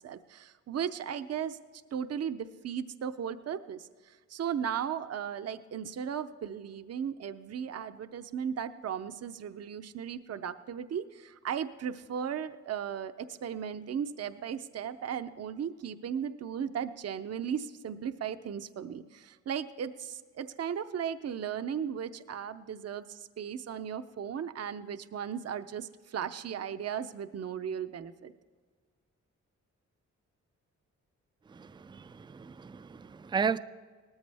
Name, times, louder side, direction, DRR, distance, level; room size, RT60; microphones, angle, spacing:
voice 1, 0.0-1.6 1.9-28.3, right 8 dB, 55° right, 0.6 m, -36 dB
voice 2, 31.5-33.6, right 6 dB, 15° right, 0.3 m, -34 dB
18.5 x 13.5 x 3.4 m
cardioid pair, 85°, 30 cm